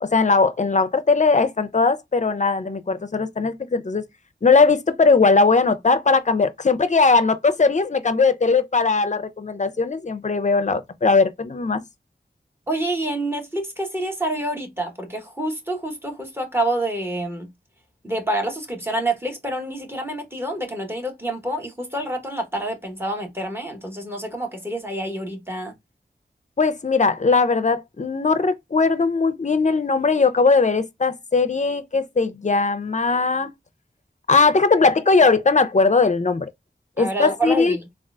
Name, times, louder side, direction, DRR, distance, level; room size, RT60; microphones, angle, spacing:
voice 1, 0.0-4.0 4.4-11.8 26.6-33.5 34.3-36.5 37.0-37.8, left 4 dB, 40° left, 0.5 m, -19 dB
voice 2, 12.7-17.5 18.0-25.7 37.0-37.8, right 1 dB, 10° right, 1.0 m, -27 dB
3.6 x 2.3 x 2.3 m
wide cardioid pair, 50°, 19 cm